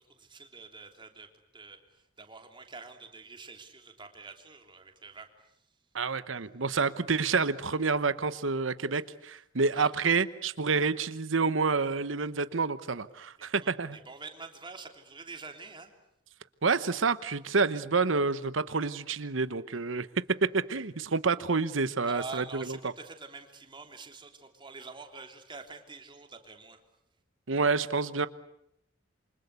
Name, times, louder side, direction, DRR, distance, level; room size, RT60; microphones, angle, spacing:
voice 1, 0.0-5.3 9.7-9.9 13.4-15.9 22.0-26.8, right 4 dB, 25° right, 5 dB, 3.3 m, -46 dB
voice 2, 5.9-14.0 16.6-20.1 20.5-22.8 27.5-28.3, right 4 dB, 75° right, 14 dB, 1.0 m, -28 dB
28.0 x 25.0 x 8.3 m, 0.76 s
head